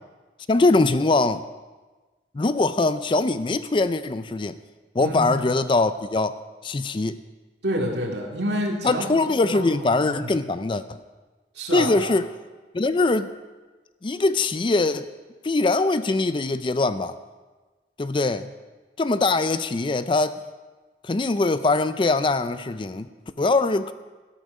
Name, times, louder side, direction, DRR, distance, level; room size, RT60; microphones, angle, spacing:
voice 1, 0.5-1.4 2.3-4.6 4.9-7.2 8.8-11.0 11.7-12.3 12.7-13.3 14.0-15.1 15.4-17.2 18.0-18.5 19.0-20.4 21.0-23.1 23.4-23.9, left 3 dB, 30° left, 13 dB, 0.4 m, -22 dB
voice 2, 5.0-5.3 7.6-9.1 9.3-10.4 11.6-12.1, equal, 75° right, 1 dB, 2.1 m, -28 dB
13.0 x 12.0 x 5.4 m, 1.3 s
head